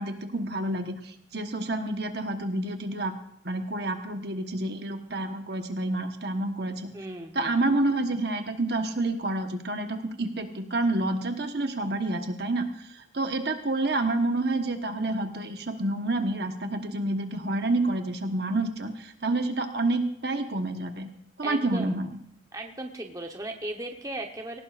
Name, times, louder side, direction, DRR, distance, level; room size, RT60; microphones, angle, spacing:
voice 1, 0.0-3.1 3.4-6.9 7.3-21.1 21.4-22.1, right 2 dB, 55° right, 5 dB, 1.3 m, -28 dB
voice 2, 6.9-7.5 21.4-22.0 22.5-24.6, right 1 dB, 20° right, 2 dB, 1.1 m, -37 dB
20.0 x 18.0 x 2.6 m, 0.67 s
head